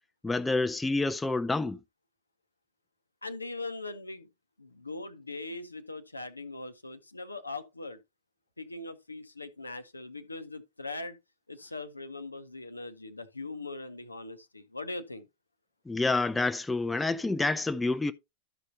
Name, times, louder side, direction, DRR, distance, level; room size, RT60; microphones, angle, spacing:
voice 1, 0.2-1.8 15.9-18.1, left 3 dB, 10° left, 0.5 m, -28 dB
voice 2, 3.2-4.3 4.6-8.0 8.6-11.2 11.5-15.3, left 2 dB, 80° left, 0.7 m, -40 dB
13.0 x 5.3 x 2.7 m
figure-of-eight pair, 90°, 0 cm